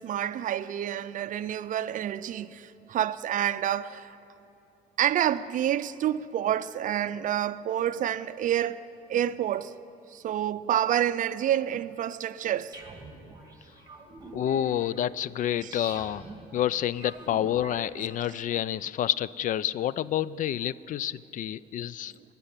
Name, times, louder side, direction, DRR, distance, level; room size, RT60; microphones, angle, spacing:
voice 1, 0.0-4.1 5.0-8.8 9.1-9.7 10.1-12.7 15.6-15.7, right 11 dB, 50° right, 0.5 m, -28 dB
sound 1, 12.7-18.5, right 3 dB, 20° right, 2.1 m, -47 dB
voice 2, 14.3-16.2 16.5-22.1, left 11 dB, 50° left, 0.4 m, -28 dB
19.0 x 6.8 x 9.8 m
cardioid pair, 110°, 17 cm